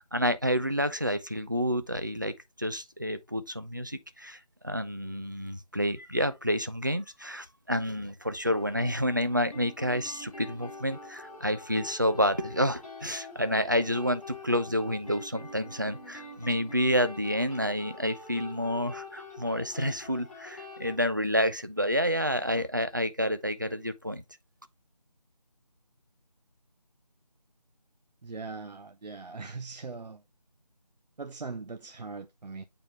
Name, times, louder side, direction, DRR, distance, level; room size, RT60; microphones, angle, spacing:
voice 1, 0.0-24.2, equal, 30° right, 0.4 m, -29 dB
sound 1, 8.4-20.9, left 2 dB, 55° left, 4.7 m, -45 dB
voice 2, 28.2-30.2 31.2-32.7, right 4 dB, 75° right, 0.6 m, -40 dB
8.6 x 3.7 x 3.0 m
figure-of-eight pair, 170°, 21 cm